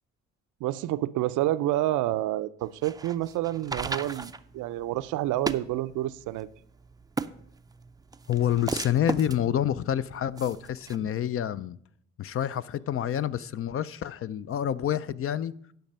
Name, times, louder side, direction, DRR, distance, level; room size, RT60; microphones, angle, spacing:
voice 1, 0.6-6.5, right 14 dB, 90° right, 0.5 m, -29 dB
sound 1, 2.6-11.0, right 4 dB, 15° right, 0.4 m, -37 dB
voice 2, 8.3-11.8 12.2-15.5, left 10 dB, 45° left, 0.5 m, -28 dB
10.5 x 5.9 x 5.4 m
cardioid pair, 90°, 30 cm